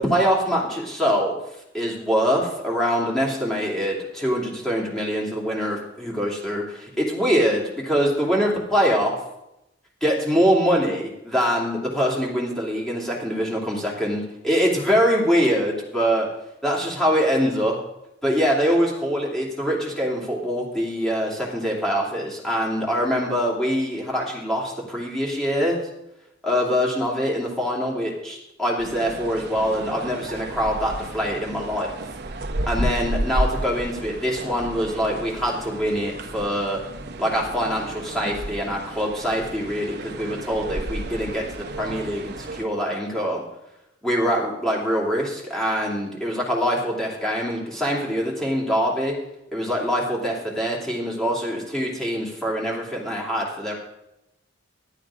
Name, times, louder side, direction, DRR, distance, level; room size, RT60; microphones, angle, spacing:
voice 1, 0.1-1.3 1.7-9.1 10.0-16.3 16.6-17.8 18.2-25.8 26.4-31.9 32.7-36.8 37.2-43.4 44.0-49.1 49.5-53.7, equal, 5° left, -4 dB, 2.8 m, -24 dB
sound 1, 28.8-42.7, right 1 dB, 55° right, 0.9 m, -32 dB
11.5 x 9.0 x 4.9 m, 0.86 s
head